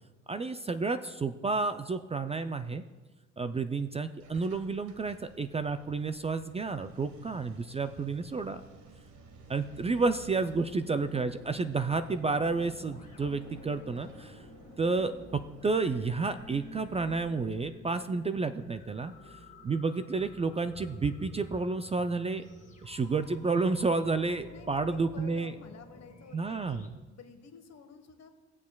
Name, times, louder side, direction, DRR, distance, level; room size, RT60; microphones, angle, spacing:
voice 1, 0.3-2.8 3.4-8.6 9.5-14.4 14.8-19.4 19.6-22.4 22.8-25.5 26.3-26.9, right 4 dB, 20° right, 10 dB, 0.3 m, -31 dB
sound 1, 4.2-17.7, right 3 dB, 75° right, 1.4 m, -54 dB
sound 2, 10.3-26.9, left 1 dB, 25° left, 1.7 m, -51 dB
voice 2, 24.5-26.8 27.1-28.3, left 6 dB, 60° left, 7 dB, 1.3 m, -51 dB
18.5 x 7.3 x 2.3 m, 1.3 s
cardioid pair, 90°, 30 cm